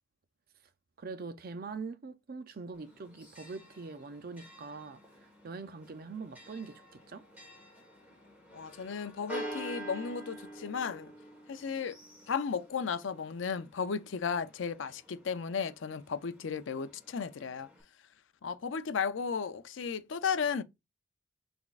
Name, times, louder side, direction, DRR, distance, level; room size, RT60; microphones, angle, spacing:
voice 1, 1.0-5.0 5.4-7.2, right 4 dB, 45° right, 0.5 m, -43 dB
Church bell, 2.7-17.8, right 1 dB, 10° right, 1.4 m, -48 dB
voice 2, 8.5-11.1 11.5-12.0 12.3-17.7 18.4-20.6, left 6 dB, 65° left, 0.5 m, -34 dB
6.0 x 3.5 x 2.4 m
head